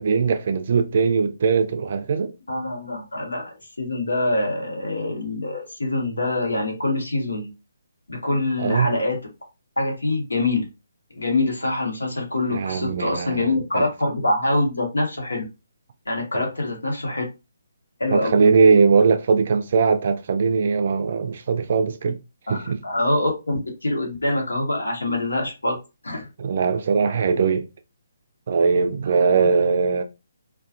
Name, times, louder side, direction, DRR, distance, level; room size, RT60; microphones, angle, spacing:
voice 1, 0.0-2.3 8.6-8.9 12.5-13.8 16.3-16.4 18.1-22.2 22.5-22.8 26.4-27.7 28.5-30.0, right 5 dB, 45° right, 0.4 m, -20 dB
voice 2, 2.5-7.5 8.1-9.2 9.8-10.6 11.1-15.4 16.1-17.3 18.0-18.4 22.5-25.8 26.0-26.3 29.2-29.5, left 2 dB, 75° left, 1.0 m, -25 dB
2.3 x 2.2 x 2.6 m
figure-of-eight pair, 140°, 0 cm